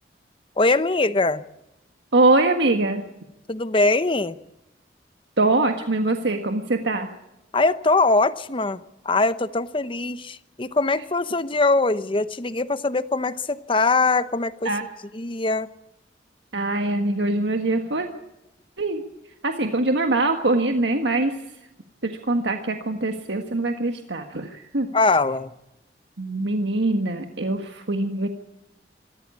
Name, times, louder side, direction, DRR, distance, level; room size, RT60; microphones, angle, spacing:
voice 1, 0.6-1.4 3.5-4.4 7.5-14.7 15.1-15.7 24.9-25.5, left 3 dB, 30° left, 0.9 m, -22 dB
voice 2, 2.1-3.0 5.4-7.1 14.6-14.8 16.5-18.1 18.8-19.0 19.4-21.3 22.0-24.9 26.2-28.3, right 2 dB, 80° right, 1.6 m, -23 dB
26.0 x 14.0 x 8.4 m
head